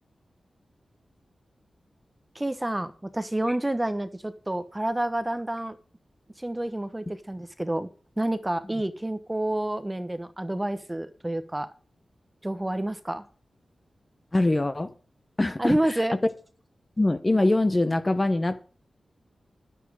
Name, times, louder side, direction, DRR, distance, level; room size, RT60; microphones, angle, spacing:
voice 1, 2.3-5.8 6.4-7.9 8.2-11.7 12.4-13.2 15.6-16.2, right 1 dB, 15° right, 11 dB, 1.0 m, -29 dB
voice 2, 14.3-14.9 15.4-15.8 17.0-18.6, left 2 dB, 20° left, 10 dB, 0.9 m, -23 dB
11.0 x 9.8 x 4.9 m, 0.39 s
wide cardioid pair, 140°, 0 cm